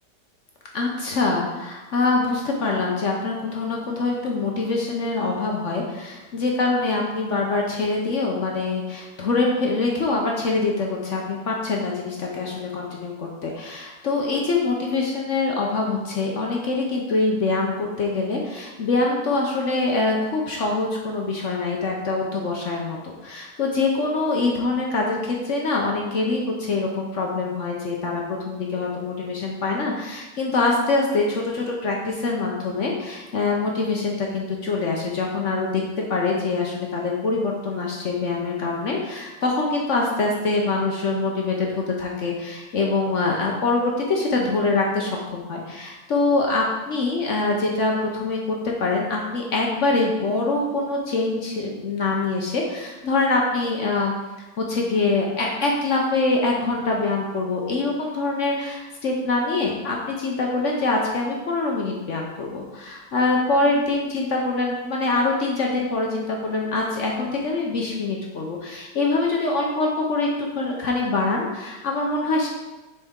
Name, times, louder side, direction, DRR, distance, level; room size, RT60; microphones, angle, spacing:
voice 1, 0.7-23.0 23.2-54.1 54.6-72.5, left 3 dB, 55° left, -1 dB, 0.9 m, -24 dB
6.8 x 4.5 x 3.6 m, 1.1 s
omnidirectional pair, 1.9 m